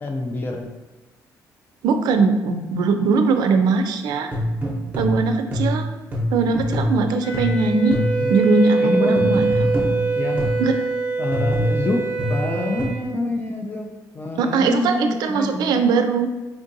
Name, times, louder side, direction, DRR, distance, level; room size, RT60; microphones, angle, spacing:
voice 1, 0.0-0.7 8.2-8.3 8.8-9.4 10.2-10.5 11.2-13.9 14.1-15.8, left 2 dB, 30° left, 2 dB, 0.4 m, -26 dB
voice 2, 1.8-4.3 5.0-5.9 6.3-8.0 8.3-9.4 10.6-10.8 14.4-16.3, right 4 dB, 80° right, 7 dB, 0.4 m, -20 dB
sound 1, 4.3-8.4 9.2-10.7 11.3-12.8, equal, 25° right, 0.7 m, -25 dB
Wind instrument woodwind instrument, 7.2-12.9, right 4 dB, 90° left, 0.9 m, -24 dB
4.5 x 2.6 x 2.6 m, 1.1 s
cardioid pair, 110°, 7 cm